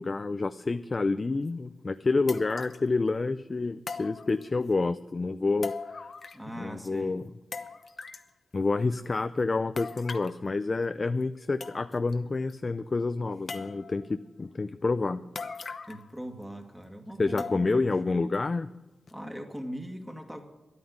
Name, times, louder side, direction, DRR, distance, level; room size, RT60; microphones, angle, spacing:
voice 1, 0.0-6.1 6.6-7.2 8.5-15.3 17.2-18.7, left 3 dB, 40° left, 11 dB, 0.5 m, -28 dB
sound 1, 1.5-1.6 2.3-2.9 3.9-4.7 5.6-6.5 6.8-6.9 7.5-8.3 9.8-10.4 11.2-11.3 11.6-12.1 12.5-12.6 13.5-14.1 15.3-16.1 16.4-16.5 17.4-17.9 18.3-18.4 19.1-19.2, left 4 dB, 60° left, 0.9 m, -40 dB
voice 2, 6.3-7.2 15.9-18.2 19.1-20.4, equal, 5° right, 3 dB, 2.3 m, -40 dB
11.0 x 9.4 x 9.4 m, 1.0 s
cardioid pair, 55°, 0 cm